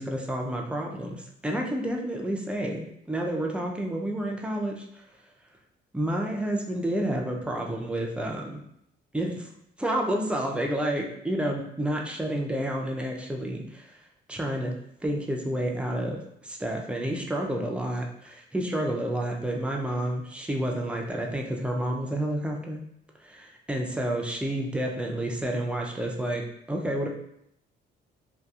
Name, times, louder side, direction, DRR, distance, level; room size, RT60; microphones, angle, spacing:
voice 1, 0.0-4.8 5.9-8.6 9.1-9.5 9.8-13.9 14.3-14.7 15.0-22.8 23.2-26.4 26.7-27.1, right 1 dB, 5° right, 0 dB, 0.4 m, -30 dB
2.7 x 2.4 x 2.3 m, 0.74 s
cardioid pair, 90°, 20 cm